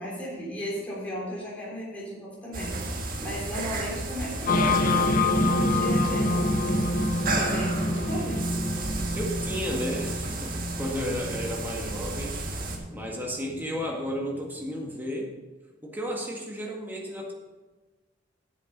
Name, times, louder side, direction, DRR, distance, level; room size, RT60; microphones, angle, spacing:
voice 1, 0.0-2.8 3.2-6.6 7.3-8.5, equal, 10° left, -6 dB, 3.5 m, -35 dB
sound 1, 2.5-12.8, right 2 dB, 50° right, 1.5 m, -33 dB
sound 2, 4.5-14.1, left 2 dB, 50° left, 0.6 m, -27 dB
voice 2, 9.1-12.4 12.9-15.3 15.8-17.3, equal, 10° right, -1 dB, 1.8 m, -33 dB
9.9 x 7.4 x 5.3 m, 1.3 s
head